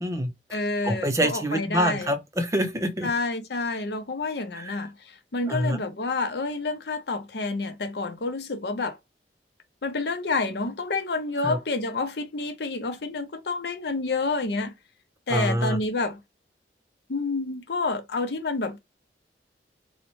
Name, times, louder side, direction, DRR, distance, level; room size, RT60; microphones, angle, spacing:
voice 1, 0.0-0.3 0.8-3.1 4.6-4.8 5.5-5.8 11.4-11.6 15.3-15.8, equal, 15° right, 0.5 m, -26 dB
voice 2, 0.5-2.1 3.0-9.0 9.8-14.7 15.3-16.2 17.1-18.8, left 3 dB, 75° left, 0.6 m, -29 dB
3.9 x 2.1 x 3.0 m
head